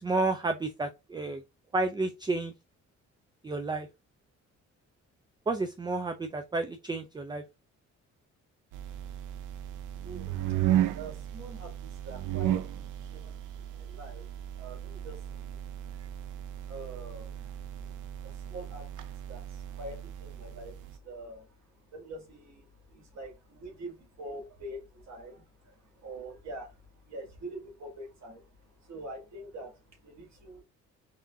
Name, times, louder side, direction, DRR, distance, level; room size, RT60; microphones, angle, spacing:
voice 1, 0.0-1.4 1.7-2.5 3.4-3.9 5.5-7.4, right 3 dB, 15° right, 0.4 m, -31 dB
sound 1, 8.7-20.9, right 12 dB, 85° right, 0.6 m, -35 dB
voice 2, 10.0-10.6 10.9-14.3 14.6-15.6 15.9-16.1 16.7-17.9 18.2-21.5 21.9-26.8 27.0-28.4 28.8-30.6, right 1 dB, 65° right, 2.2 m, -45 dB
4.2 x 3.4 x 2.6 m
cardioid pair, 90°, 30 cm